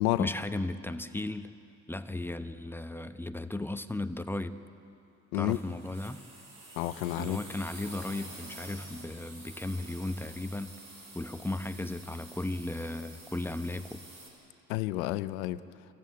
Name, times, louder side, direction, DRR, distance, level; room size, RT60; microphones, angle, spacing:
voice 1, 0.2-1.5 1.9-4.6 5.3-6.2 7.2-10.7 11.1-14.0, left 2 dB, 5° left, 9 dB, 1.0 m, -35 dB
sound 1, 5.5-14.3, right 2 dB, 55° right, 7.1 m, -49 dB
voice 2, 6.8-7.4 14.7-15.6, left 17 dB, 85° left, 14 dB, 0.7 m, -30 dB
25.0 x 14.5 x 9.5 m, 2.8 s
hypercardioid pair, 65°, 41 cm